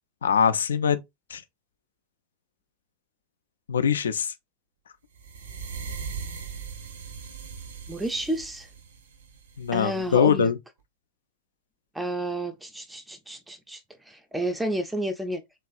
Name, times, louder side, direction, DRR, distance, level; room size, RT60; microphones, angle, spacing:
voice 1, 0.2-1.0 1.3-1.4 3.7-4.3 9.6-10.6, left 7 dB, 75° left, 0.3 m, -22 dB
sound 1, 5.2-10.2, right 6 dB, 70° right, 0.4 m, -39 dB
voice 2, 7.9-8.7 9.7-10.5 11.9-13.8 14.1-15.4, right 1 dB, 5° right, 0.4 m, -30 dB
3.0 x 2.3 x 2.4 m
figure-of-eight pair, 90°, 0 cm